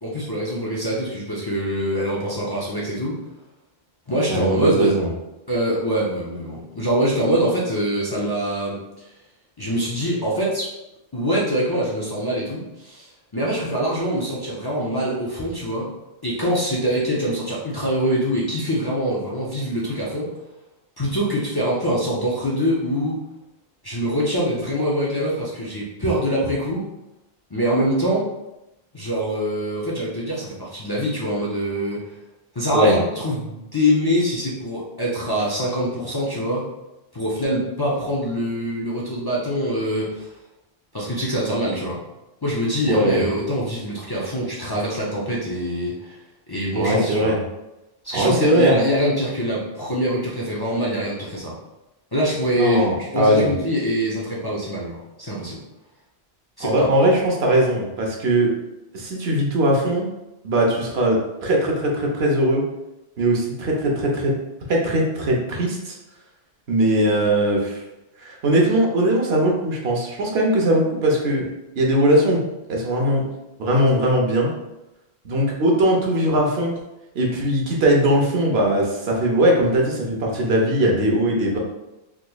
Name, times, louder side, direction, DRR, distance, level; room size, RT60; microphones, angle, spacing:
voice 1, 0.0-3.2 4.1-4.9 5.5-9.1 9.6-10.7 11.1-15.9 16.2-20.3 21.0-23.2 23.8-26.9 27.5-28.3 28.9-32.1 32.5-36.7 37.1-40.3 40.9-42.0 42.4-46.2 46.5-47.3 48.0-51.6 52.1-55.6 56.6-56.9, equal, 30° left, -6 dB, 0.5 m, -24 dB
voice 2, 4.3-5.1 32.7-32.9 42.9-43.3 46.8-47.4 48.1-48.9 52.6-53.5 56.6-58.5 58.9-60.1 60.4-62.6 63.2-64.3 64.7-66.0 66.7-67.8 68.2-71.4 71.8-72.4 72.7-73.2 73.6-74.5 75.2-76.7 77.1-81.6, right 1 dB, 85° right, -1 dB, 1.0 m, -20 dB
3.6 x 2.9 x 2.3 m, 0.94 s
omnidirectional pair, 1.0 m